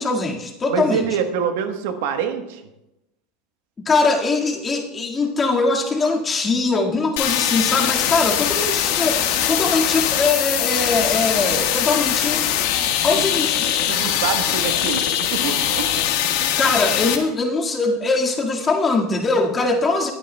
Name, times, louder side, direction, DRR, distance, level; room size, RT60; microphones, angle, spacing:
voice 1, 0.0-1.0 3.8-12.5 12.8-13.7 16.6-20.1, left 3 dB, 25° left, 0 dB, 1.8 m, -21 dB
voice 2, 0.7-2.6 13.9-16.3, right 7 dB, 75° right, 7 dB, 1.1 m, -26 dB
sound 1, 7.2-17.2, left 10 dB, 75° left, 1.4 m, -21 dB
23.0 x 9.1 x 2.2 m, 0.94 s
supercardioid pair, 110°, 0 cm